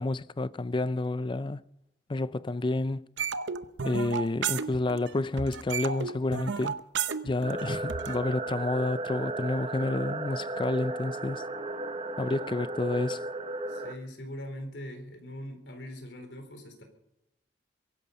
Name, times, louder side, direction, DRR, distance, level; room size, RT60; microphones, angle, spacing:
voice 1, 0.0-1.6 2.1-3.1 3.8-6.8 7.2-11.4 12.2-13.2, left 2 dB, 30° left, 0.5 m, -30 dB
sound 1, 3.2-5.1 5.4-8.2, right 6 dB, 85° right, 0.8 m, -32 dB
sound 2, 7.4-14.0, right 2 dB, 35° right, 1.1 m, -35 dB
voice 2, 13.7-16.8, equal, 75° left, 4.1 m, -41 dB
23.0 x 11.0 x 5.4 m
head